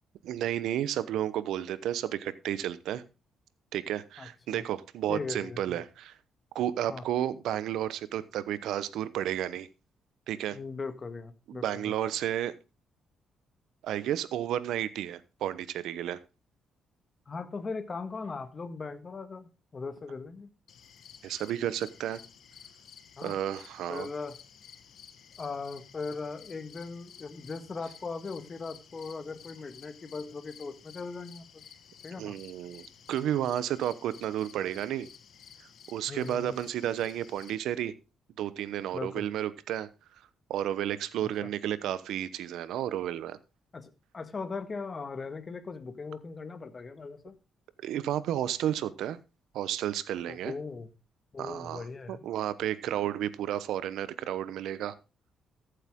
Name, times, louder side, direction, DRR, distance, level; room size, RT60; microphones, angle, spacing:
voice 1, 0.2-3.0 3.7-6.2 6.5-9.7 10.3-10.6 11.5-12.5 13.8-16.2 21.2-22.2 23.2-24.1 32.2-35.1 35.9-37.9 38.4-39.9 40.5-43.4 47.8-49.2 49.5-50.5 51.4-54.9, right 11 dB, 80° right, 1.0 m, -32 dB
voice 2, 4.2-4.6 5.1-5.8 6.9-7.0 10.5-11.9 17.3-20.5 23.2-23.4 23.9-24.4 25.4-31.7 32.0-32.4 36.1-36.6 38.9-39.3 41.4-41.5 43.7-47.4 50.3-50.9 51.3-52.2, left 4 dB, 35° left, 1.7 m, -39 dB
sound 1, 20.7-37.6, left 8 dB, 65° left, 1.6 m, -53 dB
14.5 x 8.2 x 3.7 m
cardioid pair, 90°, 0 cm